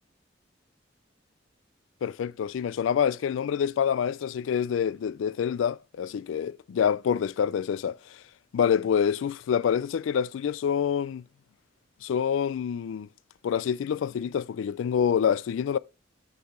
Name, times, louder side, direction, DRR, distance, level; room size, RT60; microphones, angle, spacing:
voice 1, 2.0-8.0 8.5-11.2 12.0-13.1 13.4-15.8, left 8 dB, 90° left, 0.3 m, -26 dB
8.5 x 4.1 x 4.2 m
head